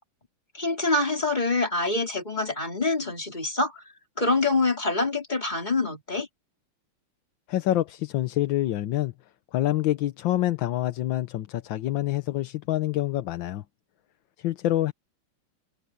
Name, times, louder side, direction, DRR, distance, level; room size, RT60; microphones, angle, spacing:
voice 1, 0.5-3.8 4.2-6.3, left 3 dB, 20° left, 3.5 m, -25 dB
voice 2, 7.5-9.1 9.5-13.6 14.4-14.9, left 14 dB, 65° left, 1.4 m, -26 dB
omnidirectional pair, 2.4 m